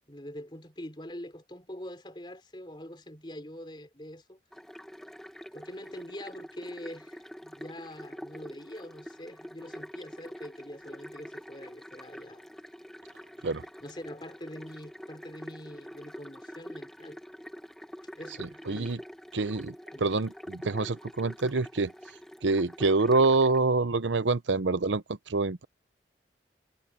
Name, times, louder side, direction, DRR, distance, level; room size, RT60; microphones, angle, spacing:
voice 1, 0.1-4.4 5.5-12.4 13.8-17.2 18.2-19.0 19.9-20.1, left 1 dB, 25° left, 3.7 m, -44 dB
sound 1, 4.5-23.6, equal, ahead, 1.0 m, -46 dB
voice 2, 18.4-19.0 19.3-19.7 20.0-21.9 22.4-25.0 25.3-25.6, right 3 dB, 90° right, 0.8 m, -26 dB
head